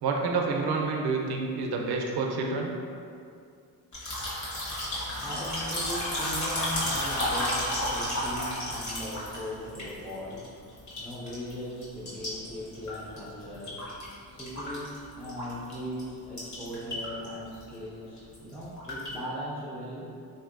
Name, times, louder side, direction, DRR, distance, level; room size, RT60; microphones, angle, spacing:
voice 1, 0.0-2.7, right 4 dB, 80° right, 1 dB, 0.5 m, -28 dB
sound 1, 3.9-10.5 10.8-11.5 11.8-14.1 14.4-15.7 16.0-16.1 16.4-17.3 17.5-17.7 18.2-19.1, left 1 dB, 50° left, 1.0 m, -32 dB
voice 2, 4.8-20.1, equal, 5° left, -7 dB, 0.3 m, -39 dB
3.3 x 2.6 x 2.4 m, 2.4 s
cardioid pair, 105°, 38 cm